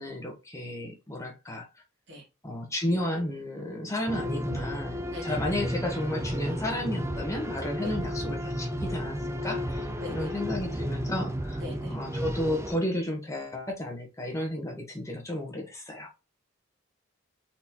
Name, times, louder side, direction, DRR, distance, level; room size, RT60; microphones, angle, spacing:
voice 1, 0.0-1.7 2.4-16.1, left 1 dB, 15° left, 1.2 m, -33 dB
sound 1, 4.1-12.8, equal, 15° right, 0.5 m, -33 dB
voice 2, 5.1-5.4 7.8-7.9 10.0-10.3 11.6-12.0, left 3 dB, 60° right, 2.2 m, -41 dB
4.2 x 4.1 x 2.9 m
head